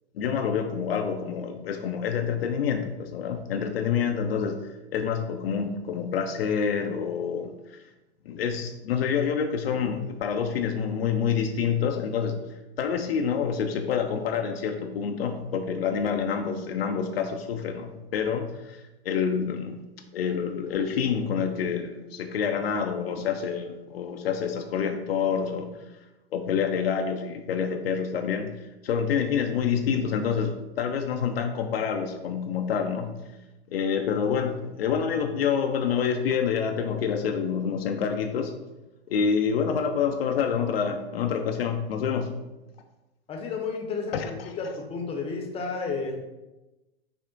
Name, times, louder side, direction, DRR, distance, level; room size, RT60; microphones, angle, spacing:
voice 1, 0.1-4.6 4.9-7.5 8.3-12.4 12.8-19.8 20.1-25.7 26.3-28.5 28.8-33.1 33.7-38.6 39.1-42.4 44.1-44.5, left 7 dB, 65° left, 4 dB, 0.5 m, -27 dB
voice 2, 43.3-46.2, left 4 dB, 20° left, 2 dB, 0.7 m, -32 dB
5.7 x 2.1 x 3.8 m, 1.0 s
figure-of-eight pair, 100°, 32 cm